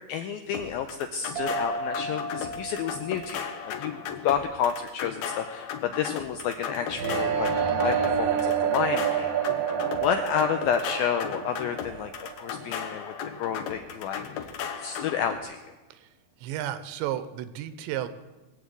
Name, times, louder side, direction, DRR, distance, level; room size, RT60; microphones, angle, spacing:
voice 1, 0.1-7.5 7.8-9.3 10.0-15.6, left 8 dB, 90° left, 7 dB, 2.1 m, -30 dB
sound 1, 0.5-15.4, left 7 dB, 70° left, 2.8 m, -36 dB
sound 2, 1.4-4.7, right 2 dB, 55° right, 1.7 m, -36 dB
sound 3, 6.9-12.8, right 9 dB, 70° right, 2.4 m, -28 dB
voice 2, 16.4-18.1, right 12 dB, 85° right, 12 dB, 3.1 m, -33 dB
21.5 x 8.1 x 8.2 m, 1.1 s
omnidirectional pair, 5.0 m